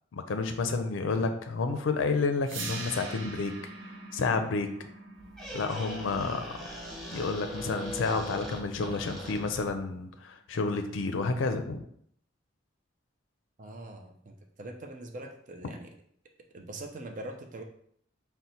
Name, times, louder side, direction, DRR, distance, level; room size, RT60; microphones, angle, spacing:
voice 1, 0.1-3.5 4.1-4.7 5.5-6.5 7.1-11.8, left 4 dB, 80° left, 7 dB, 0.4 m, -30 dB
sound 1, 2.4-8.5, right 3 dB, 85° right, 0.6 m, -43 dB
Squeak, 5.1-9.8, equal, ahead, 1.2 m, -40 dB
voice 2, 13.6-15.9 16.5-17.6, right 1 dB, 40° right, 3 dB, 0.5 m, -42 dB
4.0 x 2.1 x 4.3 m, 0.66 s
head